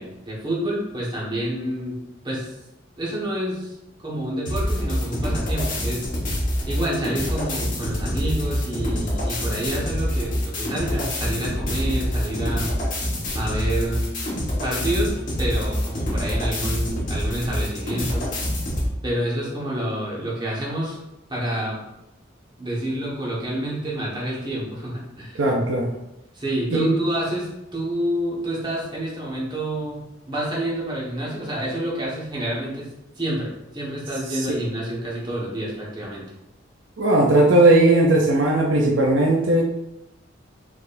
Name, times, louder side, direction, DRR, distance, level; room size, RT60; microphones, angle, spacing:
voice 1, 0.0-2.0 2.2-2.5 3.0-6.1 6.7-12.7 13.3-14.1 14.6-18.3 19.0-21.0 21.3-21.8 22.6-25.4 26.3-30.0 30.3-32.9 33.2-36.3, right 1 dB, 25° right, -5 dB, 1.5 m, -28 dB
sound 1, 4.4-18.9, equal, 45° left, 1.4 m, -26 dB
voice 2, 25.4-25.9 26.7-26.9 34.3-34.6 37.0-39.6, right 2 dB, 75° right, 0 dB, 0.6 m, -17 dB
4.7 x 4.2 x 2.7 m, 0.88 s
head